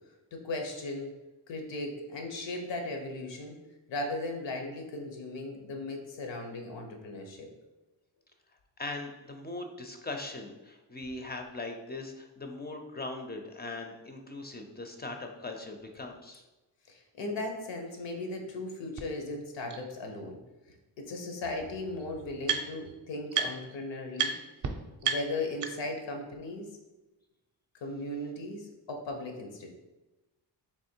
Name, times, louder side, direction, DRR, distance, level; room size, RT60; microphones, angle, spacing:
voice 1, 0.3-1.1 1.5-3.5 3.9-7.5 16.9-20.4 21.0-24.3 25.0-26.7 27.8-29.7, left 2 dB, 90° left, 3 dB, 0.9 m, -37 dB
voice 2, 8.8-16.4, left 2 dB, 25° left, 3 dB, 0.4 m, -40 dB
sound 1, 19.0-19.1 19.7-19.8 21.1-21.2 21.4-22.9 23.3-23.8 24.1-24.3 24.6-24.7 25.0-26.0, right 7 dB, 45° right, 0.5 m, -32 dB
3.6 x 3.0 x 4.3 m, 1.0 s
wide cardioid pair, 115°, 43 cm